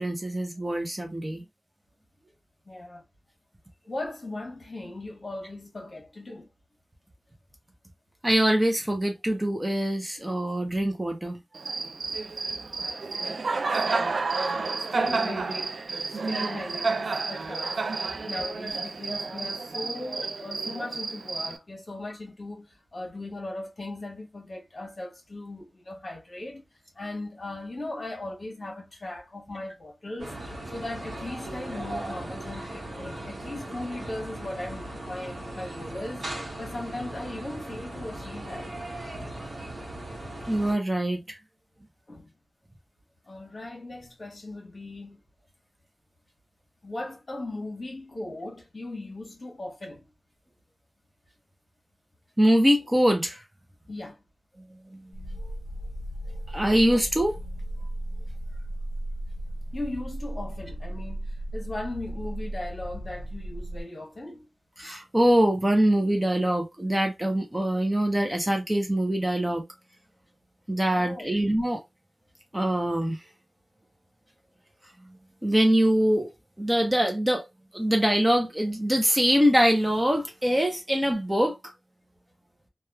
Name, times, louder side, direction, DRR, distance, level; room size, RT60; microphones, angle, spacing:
voice 1, 0.0-1.4 8.2-11.4 40.5-41.4 52.4-53.4 54.9-55.0 55.4-55.6 56.3-57.3 64.8-69.6 70.7-71.8 72.5-73.2 75.4-76.3 76.6-77.4 77.7-81.6, equal, 15° right, 0.6 m, -24 dB
voice 2, 2.6-3.0 3.9-6.5 12.5-14.3 14.9-17.8 18.3-26.6 26.9-38.7 42.1-42.3 43.2-45.2 46.8-50.1 53.9-54.2 59.7-64.5 70.9-71.4, left 2 dB, 45° left, 1.1 m, -38 dB
Cricket, 11.5-21.6, right 4 dB, 80° right, 0.3 m, -30 dB
sound 1, 30.2-40.7, right 1 dB, 65° right, 1.1 m, -38 dB
sound 2, 55.1-63.8, right 1 dB, 85° left, 0.5 m, -35 dB
3.0 x 2.3 x 2.2 m
wide cardioid pair, 100°, 0 cm